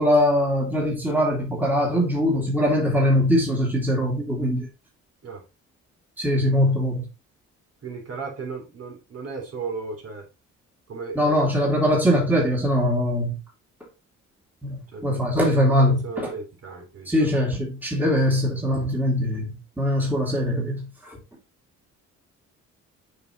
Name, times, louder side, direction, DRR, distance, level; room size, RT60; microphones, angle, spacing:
voice 1, 0.0-4.7 6.2-7.1 11.2-13.4 14.6-16.3 17.1-21.2, equal, 5° right, 2.3 m, -22 dB
voice 2, 7.8-10.3 10.9-11.5 14.9-17.3, right 4 dB, 55° right, 3.5 m, -36 dB
6.8 x 5.1 x 3.0 m
cardioid pair, 90°, 30 cm